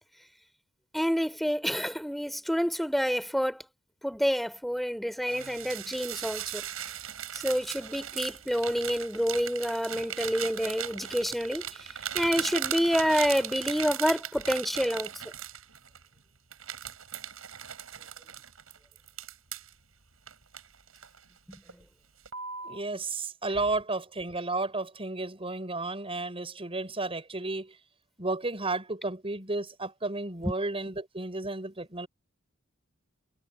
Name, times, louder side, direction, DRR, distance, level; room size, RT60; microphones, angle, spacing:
voice 1, 0.9-3.6 4.0-6.6 7.3-15.1 21.5-21.6, equal, ahead, 4.7 m, -28 dB
sound 1, 5.2-16.0 16.5-19.7 20.3-21.2 21.5-21.8 22.3-22.8, right 9 dB, 85° right, 5.7 m, -38 dB
voice 2, 22.6-27.8 28.2-32.1, right 2 dB, 25° right, 6.0 m, -33 dB
head